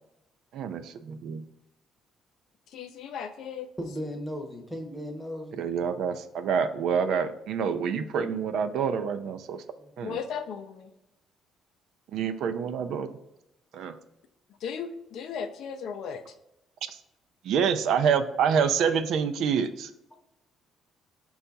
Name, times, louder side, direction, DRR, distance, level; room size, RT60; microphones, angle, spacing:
voice 1, 0.5-1.4 5.6-9.6 10.0-10.2 12.1-13.1 13.7-13.9 16.9-17.0 17.4-19.9, right 7 dB, 70° right, 9 dB, 0.4 m, -27 dB
voice 2, 2.7-3.7 10.0-10.9 14.6-16.2, left 7 dB, 65° left, 8 dB, 0.4 m, -36 dB
voice 3, 3.8-5.6 9.8-9.9, equal, 5° left, 2 dB, 0.8 m, -36 dB
5.4 x 2.3 x 3.9 m, 0.87 s
cardioid pair, 145°, 0 cm